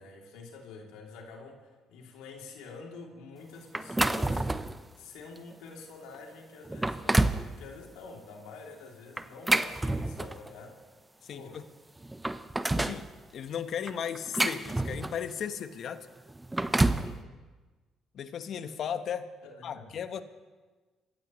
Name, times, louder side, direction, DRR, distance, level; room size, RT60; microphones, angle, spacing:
voice 1, 0.0-4.5 5.0-10.8 11.3-11.6 16.8-17.2 19.4-20.0, left 4 dB, 80° left, 0 dB, 3.1 m, -47 dB
sound 1, 3.7-4.8 5.4-5.5 6.1-6.2 6.7-7.5 9.2-10.5 11.5-11.6 12.0-13.0 13.9-15.3 16.3-17.1, right 2 dB, 15° right, 0.9 m, -28 dB
voice 2, 11.2-11.6 12.8-13.1 13.3-16.1 18.1-19.3 19.6-20.2, left 8 dB, 60° left, 10 dB, 1.2 m, -35 dB
28.0 x 15.5 x 3.2 m, 1.3 s
hypercardioid pair, 60°, 0 cm